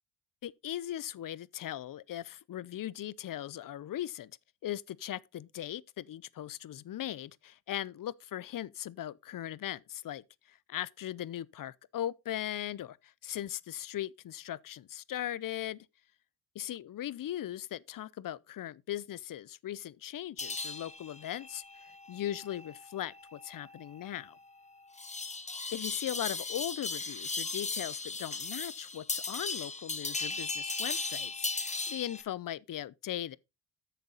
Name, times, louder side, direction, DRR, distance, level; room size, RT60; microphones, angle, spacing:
voice 1, 0.4-4.3 4.6-15.9 16.5-24.4 25.7-33.4, left 12 dB, 50° left, 0.6 m, -39 dB
sound 1, 20.4-32.2, left 3 dB, 15° left, 1.1 m, -38 dB
9.0 x 6.8 x 3.9 m
cardioid pair, 85°, 44 cm